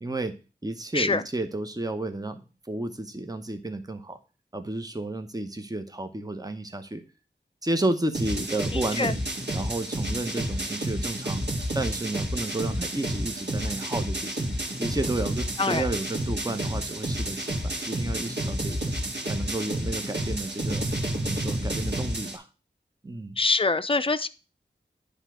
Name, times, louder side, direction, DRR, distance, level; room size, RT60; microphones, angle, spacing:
voice 1, 0.0-0.3 0.6-2.4 2.7-4.2 4.5-7.0 7.6-9.1 9.5-11.4 11.7-14.5 14.8-18.9 19.2-20.9 21.2-22.4 23.0-23.4, right 2 dB, 20° right, 7 dB, 0.9 m, -32 dB
sound 1, 8.1-22.4, right 1 dB, 65° right, 1.9 m, -30 dB
voice 2, 8.7-9.1 15.6-15.8 23.4-24.3, left 3 dB, 30° left, 11 dB, 0.5 m, -24 dB
9.8 x 3.4 x 6.1 m, 0.33 s
wide cardioid pair, 55°, 19 cm